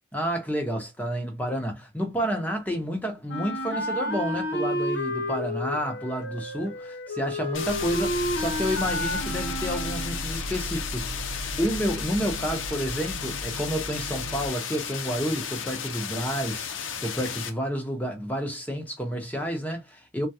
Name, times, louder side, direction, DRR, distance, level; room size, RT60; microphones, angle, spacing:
voice 1, 0.1-11.3 11.6-20.3, equal, 10° left, 0.9 m, -30 dB
Wind instrument woodwind instrument, 3.3-10.3, left 1 dB, 65° left, 0.9 m, -31 dB
sound 1, 7.5-17.5, left 7 dB, 85° left, 0.7 m, -34 dB
sound 2, 7.6-14.5, right 1 dB, 70° right, 0.6 m, -37 dB
3.7 x 2.3 x 2.8 m
head